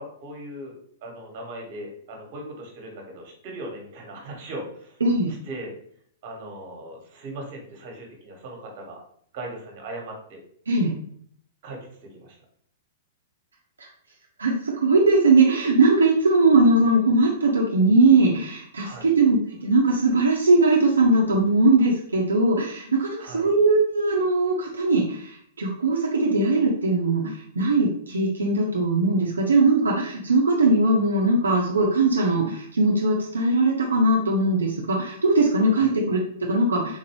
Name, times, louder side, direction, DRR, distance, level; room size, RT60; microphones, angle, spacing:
voice 1, 0.0-5.0 5.4-5.7 6.2-9.0 9.3-10.4 11.6-12.4 18.8-19.1 23.2-23.5 35.7-35.9, right 1 dB, 50° right, 1 dB, 1.3 m, -38 dB
voice 2, 5.0-5.3 10.7-10.9 13.8-13.9 14.4-37.0, right 2 dB, 90° right, -1 dB, 0.5 m, -20 dB
3.8 x 2.6 x 3.0 m, 0.62 s
hypercardioid pair, 115°, 0 cm